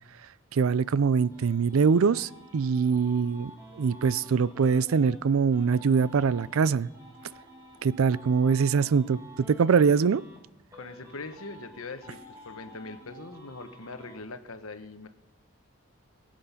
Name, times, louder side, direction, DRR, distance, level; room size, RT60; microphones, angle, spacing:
voice 1, 0.5-3.5 3.8-6.9 7.8-9.2 9.5-10.2, right 5 dB, 80° right, 20 dB, 0.4 m, -23 dB
sound 1, 0.8-5.2 5.5-10.4 10.7-14.2, equal, 15° right, 2.4 m, -50 dB
voice 2, 10.7-12.2 12.4-15.1, left 3 dB, 80° left, 8 dB, 1.2 m, -41 dB
22.0 x 7.9 x 5.7 m, 0.89 s
head